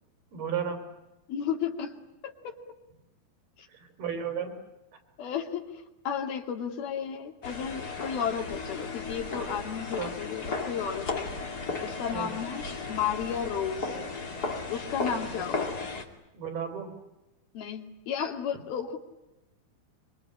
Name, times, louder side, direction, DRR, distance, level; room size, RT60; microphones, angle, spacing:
voice 1, 0.3-0.8 3.7-4.5 10.0-10.1 12.1-12.4 15.3-15.4 16.3-16.9, right 7 dB, 80° right, 7 dB, 5.6 m, -34 dB
voice 2, 1.3-1.9 2.2-2.6 3.6-3.7 5.2-5.7 6.1-11.3 11.8-14.0 14.7-15.7 17.5-19.0, left 8 dB, 75° left, 5 dB, 4.2 m, -33 dB
sound 1, 7.4-16.0, left 3 dB, 30° left, 2.6 m, -35 dB
24.5 x 24.5 x 9.7 m, 0.96 s
omnidirectional pair, 4.4 m